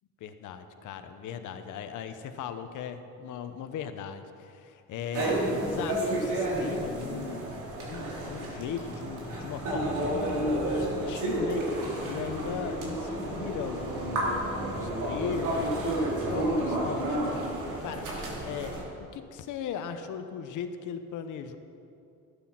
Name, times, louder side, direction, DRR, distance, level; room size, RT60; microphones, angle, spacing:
voice 1, 0.2-17.2 17.8-18.0 18.4-21.6, left 7 dB, 80° left, 9 dB, 0.9 m, -38 dB
sound 1, 5.1-18.8, right 1 dB, 85° right, 3.1 m, -31 dB
12.5 x 9.7 x 5.9 m, 2.7 s
cardioid pair, 90°, 30 cm